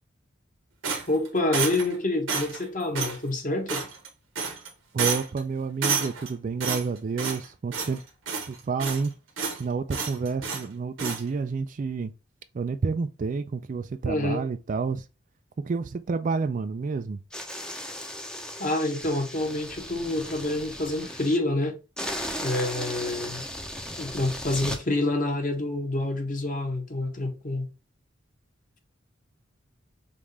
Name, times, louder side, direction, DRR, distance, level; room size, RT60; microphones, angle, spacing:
sound 1, 0.8-1.9 2.3-2.6 2.9-3.2 3.7-4.1 4.3-4.7 5.0-5.4 5.8-6.3 6.6-7.5 7.7-8.0 8.3-9.1 9.4-9.6 9.9-10.7 11.0-11.2, right 5 dB, 80° right, 1.2 m, -30 dB
voice 1, 1.1-3.8 14.0-14.4 18.6-21.8 22.4-23.5 24.0-27.7, left 2 dB, 40° left, 1.2 m, -27 dB
voice 2, 4.9-8.0 8.5-9.1 9.6-12.1 12.5-15.0 15.6-17.2, right 4 dB, 40° right, 0.3 m, -29 dB
sound 2, 17.3-21.4 22.0-24.8, equal, 5° left, 0.6 m, -36 dB
5.2 x 2.5 x 3.1 m
head